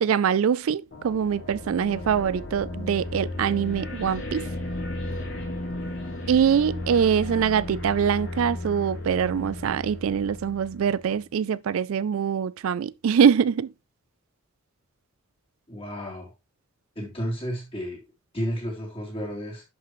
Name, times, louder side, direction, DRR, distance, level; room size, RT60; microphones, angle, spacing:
voice 1, 0.0-4.5 6.3-13.7, right 7 dB, 75° right, 0.4 m, -23 dB
sound 1, 0.9-11.1, left 1 dB, 55° left, 3.3 m, -34 dB
voice 2, 15.7-16.3 16.9-18.0 18.3-19.6, equal, 25° left, 3.3 m, -32 dB
11.0 x 5.8 x 3.1 m
head